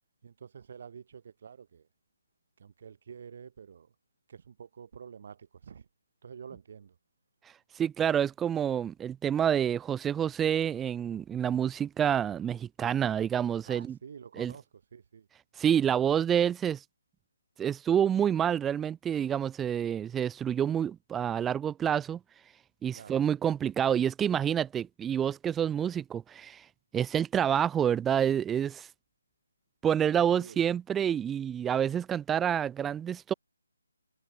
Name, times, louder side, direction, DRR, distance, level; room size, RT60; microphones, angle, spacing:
voice 1, 0.2-1.9 2.6-3.9 4.3-5.9 6.2-7.0 13.6-14.6 14.9-15.3 22.9-23.2 29.9-30.7, right 7 dB, 50° right, 3.7 m, -48 dB
voice 2, 7.8-13.9 14.4-14.5 15.6-16.8 17.6-22.2 22.8-26.6 26.9-28.9 29.8-33.3, right 9 dB, 10° right, 0.5 m, -28 dB
figure-of-eight pair, 155°, 0 cm